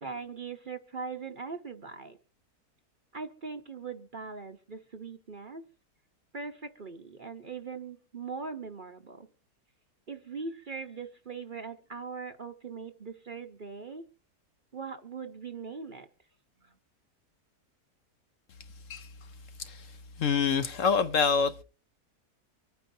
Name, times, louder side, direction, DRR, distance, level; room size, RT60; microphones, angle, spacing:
voice 1, 0.0-2.2 3.1-5.6 6.3-9.3 10.1-14.0 14.7-16.1, right 5 dB, 40° right, 0.9 m, -40 dB
voice 2, 20.2-21.6, left 6 dB, 60° left, 1.0 m, -26 dB
25.5 x 9.3 x 2.7 m
omnidirectional pair, 1.6 m